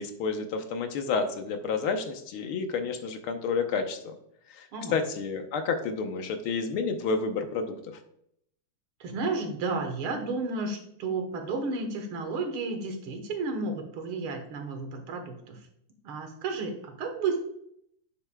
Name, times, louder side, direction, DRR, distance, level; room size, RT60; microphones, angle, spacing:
voice 1, 0.0-4.1 4.5-4.7 4.9-7.7, left 5 dB, 75° left, 6 dB, 1.7 m, -30 dB
voice 2, 9.0-15.6 16.0-17.4, right 3 dB, 75° right, 5 dB, 2.0 m, -32 dB
9.8 x 6.8 x 2.2 m, 0.72 s
omnidirectional pair, 2.4 m